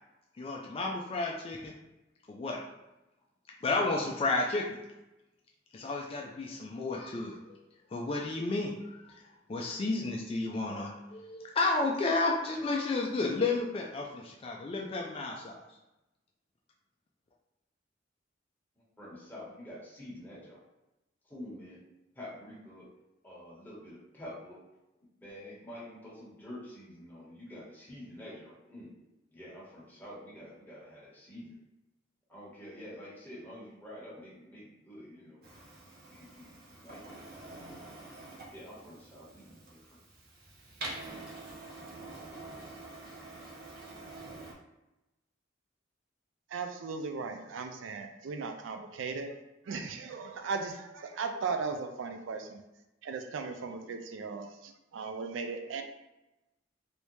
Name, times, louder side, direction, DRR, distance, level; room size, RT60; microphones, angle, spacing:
voice 1, 0.4-1.7 2.3-2.6 3.6-4.8 5.7-7.6 7.9-9.2 9.5-15.6, left 3 dB, 30° left, 0 dB, 0.3 m, -32 dB
voice 2, 18.8-20.6 21.2-21.8 22.1-22.9 23.2-24.6 25.2-28.9 29.3-31.6 32.3-35.4 36.1-37.2 38.5-40.0, left 1 dB, 10° left, -7 dB, 1.2 m, -47 dB
Printer, 35.4-44.5, right 2 dB, 55° right, 0.8 m, -46 dB
voice 3, 46.5-49.4 49.7-52.6 53.0-55.8, right 4 dB, 75° right, 6 dB, 0.4 m, -37 dB
3.3 x 2.7 x 3.0 m, 0.98 s
head